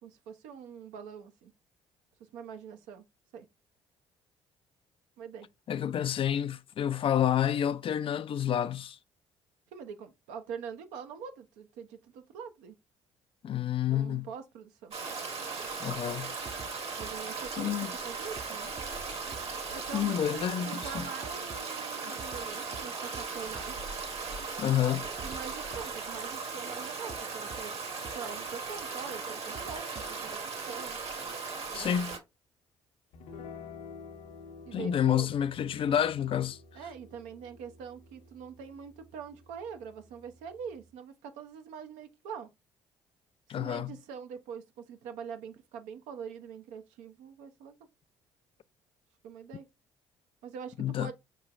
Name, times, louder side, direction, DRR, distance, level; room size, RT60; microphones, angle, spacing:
voice 1, 0.0-1.5 2.2-3.0 3.3-3.5 5.2-5.5 9.7-12.8 13.9-14.9 17.0-18.7 19.7-23.8 25.2-27.7 28.1-31.0 31.7-31.9 34.7-35.3 36.7-42.5 43.5-47.8 49.2-49.7 50.4-51.1, right 7 dB, 75° right, 0.7 m, -44 dB
voice 2, 5.7-9.0 13.4-14.3 15.8-16.3 17.6-17.9 19.9-21.1 24.6-25.1 31.7-32.2 34.7-36.6 43.5-43.9 50.8-51.1, left 10 dB, 45° left, 0.4 m, -29 dB
Stream, 14.9-32.2, right 4 dB, 50° right, 1.3 m, -38 dB
sound 1, 16.5-16.7 17.0-17.1 18.4-18.5 18.8-18.9 19.3-19.4 20.8-21.6 22.2-22.4 22.7-22.8 23.1-23.2 23.5-23.6 25.2-25.4 25.7-25.8 27.1-27.2 27.5-27.6 28.0-28.1 29.5-30.2, right 4 dB, 35° right, 0.7 m, -45 dB
sound 2, 33.1-40.9, left 4 dB, 70° left, 0.8 m, -50 dB
4.5 x 3.1 x 2.4 m
hypercardioid pair, 55°, 13 cm